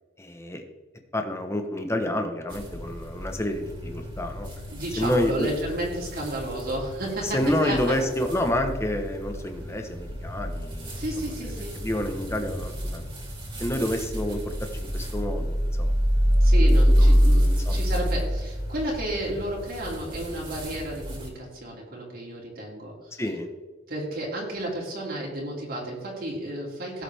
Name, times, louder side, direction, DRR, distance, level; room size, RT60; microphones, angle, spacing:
voice 1, 0.2-0.6 1.1-4.5 5.0-5.5 7.2-11.0 11.4-13.0 13.6-15.9 16.2-16.5 17.0-17.8 23.2-23.5, left 1 dB, 15° left, 5 dB, 1.2 m, -29 dB
sound 1, 2.5-21.3, equal, 25° right, 3.1 m, -26 dB
voice 2, 4.7-8.1 10.9-11.7 16.4-23.2 23.9-27.0, right 1 dB, 50° right, -4 dB, 2.8 m, -32 dB
18.0 x 7.2 x 3.5 m, 1.3 s
head